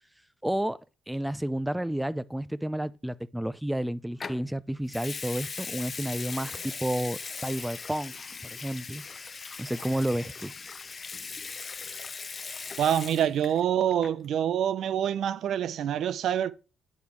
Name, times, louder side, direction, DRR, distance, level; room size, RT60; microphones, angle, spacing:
voice 1, 0.4-0.8 1.1-8.1 8.5-9.0 9.6-10.5, right 1 dB, 5° right, 0.5 m, -31 dB
Water tap faucet / Sink (filling or washing) / Liquid, 4.2-4.4 4.9-13.6 13.9-14.3, left 5 dB, 40° left, 0.6 m, -39 dB
voice 2, 12.8-16.5, right 9 dB, 70° right, 0.6 m, -26 dB
8.7 x 5.4 x 4.6 m
cardioid pair, 90°, 0 cm